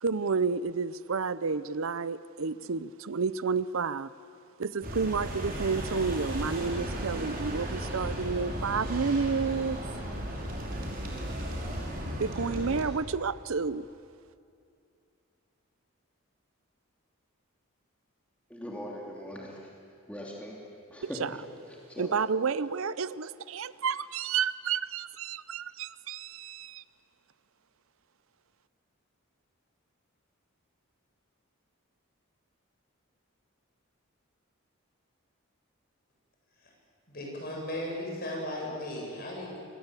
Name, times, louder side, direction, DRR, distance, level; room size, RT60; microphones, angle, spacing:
voice 1, 0.0-4.1 4.6-9.8 12.2-13.9 21.0-21.4 22.0-26.8, right 5 dB, 70° right, 16 dB, 0.6 m, -30 dB
sound 1, 4.8-12.9, right 1 dB, 40° right, 4.6 m, -35 dB
voice 2, 18.5-19.6 20.1-20.6 20.9-21.4 21.9-22.2, equal, 5° left, -3 dB, 3.1 m, -40 dB
voice 3, 37.1-39.6, left 1 dB, 45° left, -2 dB, 8.0 m, -36 dB
28.0 x 23.5 x 8.3 m, 2.4 s
head